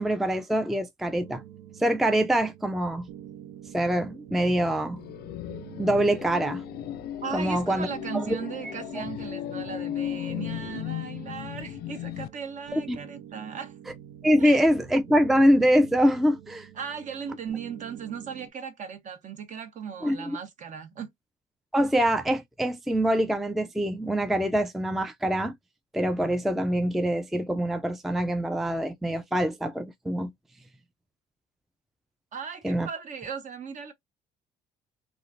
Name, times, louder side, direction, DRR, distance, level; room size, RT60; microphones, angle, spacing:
voice 1, 0.0-1.4 1.8-3.1 3.7-5.0 5.8-6.6 7.3-7.9 8.1-8.4 12.7-13.0 14.2-16.7 20.0-20.4 21.7-25.6 25.9-30.3 32.6-32.9, equal, ahead, 0.3 m, -24 dB
sound 1, 1.2-18.5, right 10 dB, 90° right, 0.6 m, -47 dB
sound 2, 5.0-12.3, left 13 dB, 70° left, 0.4 m, -36 dB
voice 2, 7.2-13.7 14.4-14.6 16.8-21.1 32.3-33.9, right 6 dB, 45° right, 0.9 m, -37 dB
3.0 x 2.5 x 2.5 m
cardioid pair, 110°, 17 cm